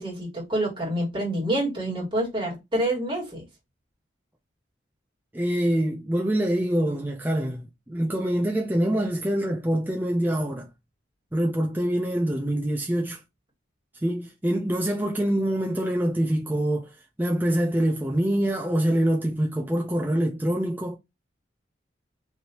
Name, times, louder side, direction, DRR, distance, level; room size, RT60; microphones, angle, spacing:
voice 1, 0.0-3.5, right 1 dB, 25° right, 1.8 m, -27 dB
voice 2, 5.3-10.7 11.3-13.2 14.0-16.9 17.2-21.0, right 1 dB, 10° right, 0.4 m, -25 dB
3.2 x 2.7 x 2.8 m
head